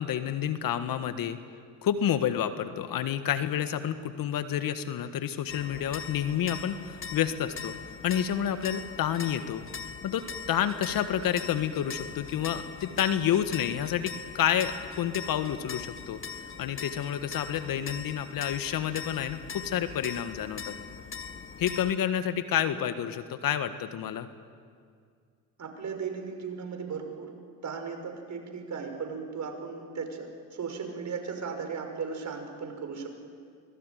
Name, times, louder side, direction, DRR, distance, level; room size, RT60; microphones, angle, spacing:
voice 1, 0.0-1.4 1.8-7.7 8.0-9.6 10.0-16.2 16.6-20.7 21.6-24.3, left 10 dB, 60° left, 10 dB, 1.6 m, -29 dB
sound 1, 5.5-21.9, left 5 dB, 30° left, 1.7 m, -41 dB
voice 2, 25.6-27.3 27.6-33.1, right 5 dB, 45° right, 5 dB, 5.8 m, -36 dB
24.5 x 20.5 x 9.3 m, 2.1 s
hypercardioid pair, 65°, 39 cm